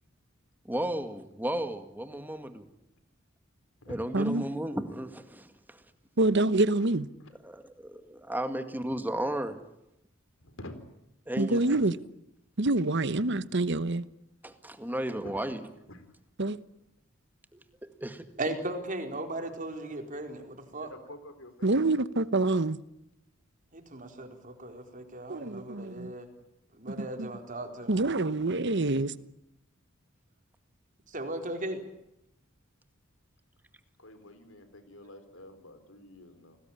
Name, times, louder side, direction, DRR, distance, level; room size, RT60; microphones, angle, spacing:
voice 1, 0.7-2.7 3.9-5.8 7.4-9.6 11.3-11.8 14.4-15.6 18.0-18.3, right 1 dB, 10° right, 2.0 m, -34 dB
voice 2, 6.2-7.1 11.4-12.0 12.6-14.1 16.4-16.6 21.6-22.8 25.3-26.1 27.0-27.3 27.9-29.1, right 2 dB, 60° right, 1.1 m, -26 dB
voice 3, 10.4-10.7 15.2-15.4 15.9-16.0 20.8-22.1 34.0-36.6, left 1 dB, 75° left, 4.3 m, -48 dB
voice 4, 18.4-20.9 23.7-26.3 26.8-28.0 31.1-31.8, right 2 dB, 40° right, 4.4 m, -37 dB
30.0 x 20.0 x 8.9 m
head